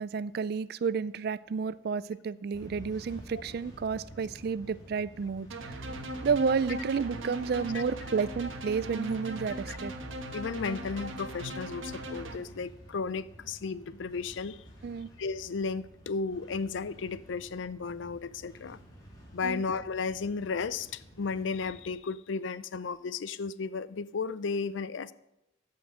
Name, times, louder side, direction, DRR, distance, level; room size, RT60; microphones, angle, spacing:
voice 1, 0.0-5.8 6.2-9.9 14.8-15.1 19.4-19.6, right 5 dB, 50° right, 18 dB, 0.3 m, -31 dB
sound 1, 2.5-21.9, equal, 20° left, 2.4 m, -51 dB
sound 2, 5.5-12.4, right 1 dB, 85° right, 1.4 m, -39 dB
voice 2, 10.3-14.6 15.2-18.8 19.3-25.1, left 4 dB, 70° left, 17 dB, 0.4 m, -34 dB
14.0 x 5.8 x 6.1 m, 0.90 s
head